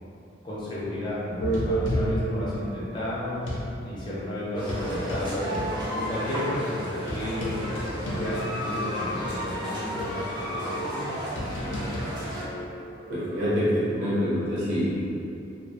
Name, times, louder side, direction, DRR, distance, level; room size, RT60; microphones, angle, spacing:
voice 1, 0.4-3.5 3.8-5.6 5.9-7.6 8.2-11.5, left 1 dB, 25° left, -8 dB, 0.5 m, -33 dB
sound 1, 1.4-3.7 4.5-8.9 9.3-9.4 10.0-13.5, equal, 85° left, 0.4 m, -32 dB
sound 2, 4.5-12.4, equal, 25° right, 0.5 m, -33 dB
voice 2, 13.1-14.9, equal, 80° right, -11 dB, 1.0 m, -25 dB
2.3 x 2.1 x 2.7 m, 2.6 s
head